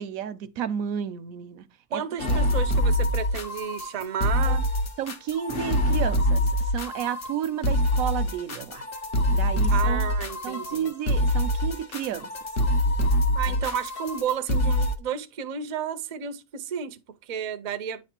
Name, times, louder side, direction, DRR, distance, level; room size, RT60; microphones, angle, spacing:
voice 1, 0.0-1.7 1.9-2.0 2.3-2.4 4.5-4.6 5.0-8.9 9.3-10.1 10.4-12.3 13.4-13.5, right 9 dB, 80° right, 1.0 m, -32 dB
voice 2, 1.9-4.7 9.7-10.9 13.3-18.1, right 8 dB, 50° right, 0.5 m, -32 dB
sound 1, 2.2-14.9, left 1 dB, 45° left, 1.1 m, -25 dB
9.3 x 3.3 x 4.3 m
omnidirectional pair, 1.4 m